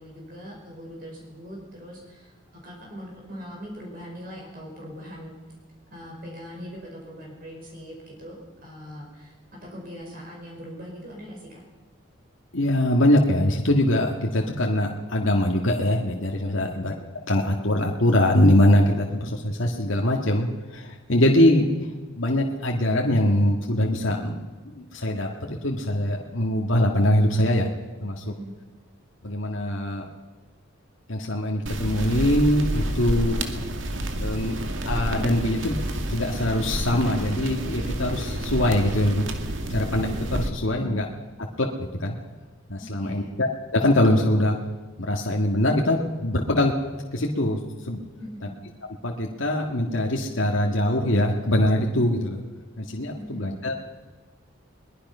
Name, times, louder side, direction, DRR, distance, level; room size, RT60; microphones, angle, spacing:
voice 1, 0.0-2.3 2.6-5.3 5.9-9.3 9.6-11.6 16.5-16.8 28.2-28.5 40.7-41.1 42.8-43.4 48.2-48.6 53.1-53.7, equal, 45° right, -1 dB, 5.2 m, -41 dB
voice 2, 12.5-16.9 17.3-21.7 22.2-24.4 24.7-27.7 28.0-28.3 29.2-30.0 31.1-33.4 34.2-34.6 34.9-35.8 36.1-39.2 39.7-41.1 41.6-41.7 42.0-42.2 42.7-44.5 45.0-46.7 47.1-47.6 47.9-48.0 49.0-52.4 52.8-53.7, left 1 dB, 75° left, 0 dB, 2.0 m, -22 dB
sound 1, 31.7-40.5, right 1 dB, 70° right, 2.2 m, -29 dB
22.0 x 21.0 x 5.7 m, 1.3 s
head